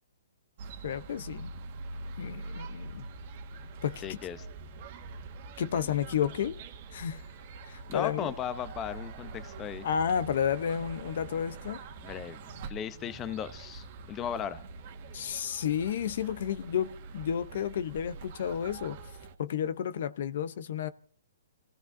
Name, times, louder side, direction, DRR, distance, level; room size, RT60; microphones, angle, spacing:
sound 1, 0.6-19.4, right 3 dB, 45° right, 1.6 m, -44 dB
voice 1, 0.8-1.5 2.2-3.1 3.8-4.2 5.6-6.6 6.9-7.2 7.7-8.3 9.8-11.8 15.1-19.0 19.4-20.9, left 8 dB, 55° left, 0.7 m, -31 dB
voice 2, 4.0-4.5 7.9-9.9 12.0-12.4 12.7-14.6, left 9 dB, 20° left, 0.7 m, -36 dB
28.5 x 16.5 x 2.7 m
hypercardioid pair, 145°, 0 cm